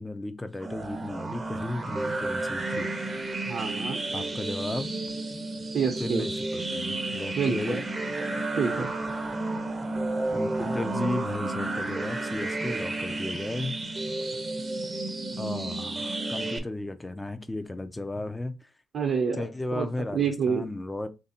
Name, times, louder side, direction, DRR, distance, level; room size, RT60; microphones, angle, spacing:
voice 1, 0.0-2.9 4.1-4.9 6.0-7.8 10.3-13.8 15.4-18.7 19.3-21.1, left 2 dB, 15° left, 0.5 m, -34 dB
sound 1, 0.6-16.6, right 2 dB, 25° right, 0.7 m, -32 dB
voice 2, 3.5-4.0 5.7-6.3 7.4-7.8 8.5-8.9 18.9-19.4 19.7-19.9 20.1-20.6, right 6 dB, 60° right, 0.7 m, -27 dB
3.4 x 2.6 x 4.2 m
cardioid pair, 90°, 0 cm